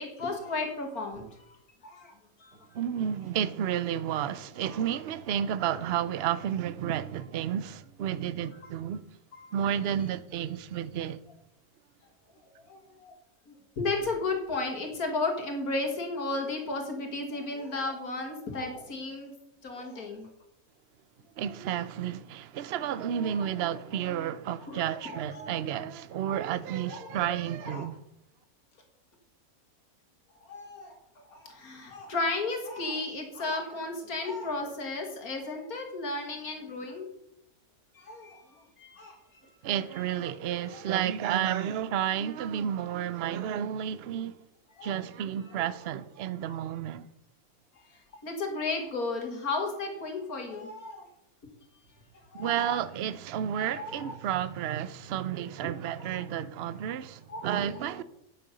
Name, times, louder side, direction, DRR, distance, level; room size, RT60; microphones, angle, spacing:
voice 1, 0.0-1.6 1.8-2.6 4.7-4.8 9.3-9.5 12.6-13.2 13.5-19.3 19.6-20.3 23.1-23.5 24.6-25.6 26.3-26.4 26.9-27.1 27.6-27.9 30.4-37.1 37.9-39.2 40.7-40.9 44.7-44.9 46.5-46.6 47.9-51.1 52.3-52.8 53.6-54.1 56.0-56.2 57.3-57.6, left 3 dB, 75° left, 2.3 m, -34 dB
voice 2, 2.7-9.0 9.5-11.2 21.4-28.0 39.6-44.4 44.8-47.1 52.3-58.0, right 10 dB, 60° right, 0.7 m, -31 dB
10.0 x 6.8 x 6.9 m
omnidirectional pair, 1.6 m